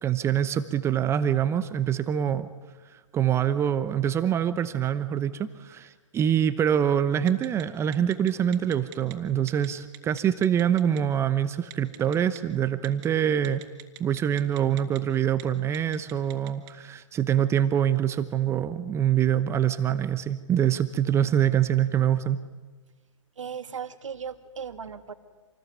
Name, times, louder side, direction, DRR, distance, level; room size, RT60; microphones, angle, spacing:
voice 1, 0.0-2.5 2.9-13.6 14.0-22.4, right 9 dB, 15° right, 13 dB, 0.9 m, -25 dB
Telephone, 7.3-7.6 7.9-9.1 9.5-9.7 9.9-11.0 11.7-12.4 12.8-13.1 13.4-15.0 15.3-15.4 15.7-16.7, right 19 dB, 35° right, 3.1 m, -43 dB
voice 2, 23.4-25.1, right 7 dB, 70° right, 9 dB, 2.2 m, -37 dB
27.5 x 19.5 x 9.4 m, 1.3 s
figure-of-eight pair, 125°, 16 cm